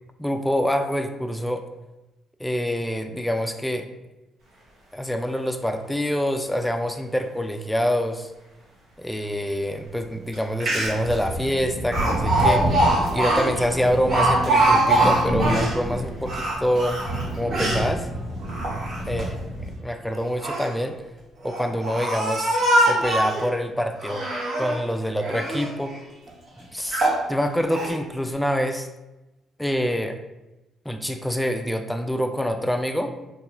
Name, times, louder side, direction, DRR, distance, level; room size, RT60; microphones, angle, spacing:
voice 1, 0.2-1.6 2.4-3.9 4.9-8.3 9.0-12.9 13.1-17.0 17.4-18.1 19.1-19.3 19.8-21.0 21.4-22.6 22.9-24.3 24.6-26.0 26.7-28.9 29.6-30.2 30.9-33.1, equal, 5° left, 6 dB, 0.3 m, -26 dB
sound 1, 9.5-9.6 10.0-10.1 10.8-19.8, equal, 75° right, 1.2 m, -29 dB
Speech, 10.3-10.4 10.6-11.1 11.9-15.8 16.2-17.9 18.4-19.2 20.2-20.7 21.4-23.5 24.0-24.8 25.2-25.7 26.3-26.4 26.9-27.2 27.7-27.9, right 1 dB, 55° right, 0.9 m, -23 dB
2.8 x 2.3 x 2.4 m, 1.0 s
supercardioid pair, 60°, 0 cm